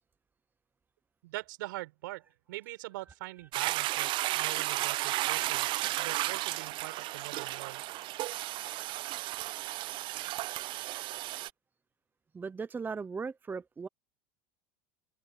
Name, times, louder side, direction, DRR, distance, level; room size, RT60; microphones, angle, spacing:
voice 1, 1.2-5.7 6.0-7.8, right 20 dB, 80° right, 7.2 m, -43 dB
Toilet flush, 3.5-11.5, right 17 dB, 50° right, 0.5 m, -33 dB
voice 2, 12.3-13.9, right 5 dB, 20° right, 0.9 m, -37 dB
open air
supercardioid pair, 105°, 11 cm